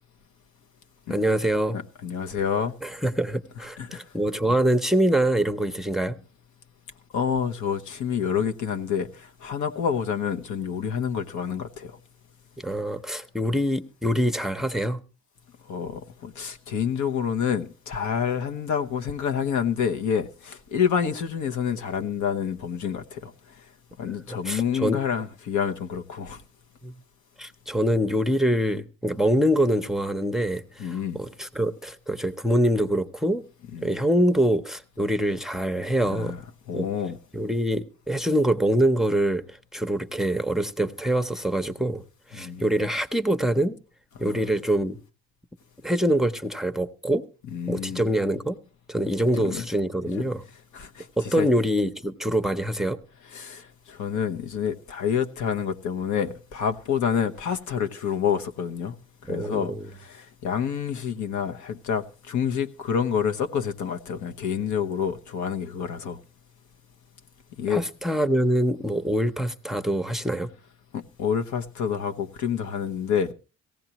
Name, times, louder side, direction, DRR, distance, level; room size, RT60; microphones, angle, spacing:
voice 1, 1.1-1.8 2.8-6.2 12.6-15.0 24.3-25.0 26.8-26.9 27.4-33.4 33.8-36.3 36.7-36.9 37.3-42.0 42.3-43.8 44.2-45.0 45.8-47.2 47.7-48.6 48.9-50.4 51.2-53.0 59.3-59.9 67.7-70.5, right 1 dB, ahead, 0.8 m, -24 dB
voice 2, 2.0-2.7 3.8-4.0 7.1-12.0 15.7-23.3 24.0-26.4 30.8-31.2 33.7-33.9 36.1-36.4 36.7-37.2 42.3-42.6 44.2-44.4 47.5-48.0 49.4-49.7 50.7-51.5 53.3-58.9 59.3-66.2 67.6-67.8 70.9-73.3, left 7 dB, 75° left, 1.1 m, -28 dB
18.0 x 15.5 x 3.0 m
cardioid pair, 90°, 30 cm